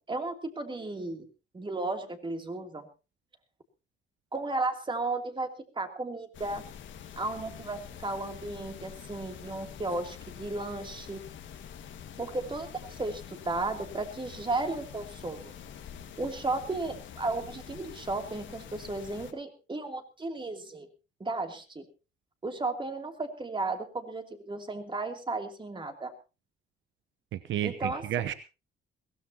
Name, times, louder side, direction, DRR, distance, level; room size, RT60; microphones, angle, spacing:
voice 1, 0.1-1.3 1.5-2.9 4.3-6.7 7.2-11.2 12.2-15.5 16.2-20.9 21.2-21.8 22.4-26.1 27.6-28.0, right 2 dB, 25° right, 5 dB, 2.9 m, -34 dB
sound 1, 6.3-19.3, left 8 dB, 70° left, 1.9 m, -46 dB
voice 2, 27.3-28.3, right 11 dB, 75° right, 12 dB, 0.9 m, -31 dB
21.5 x 16.5 x 2.9 m, 0.31 s
cardioid pair, 90°, 20 cm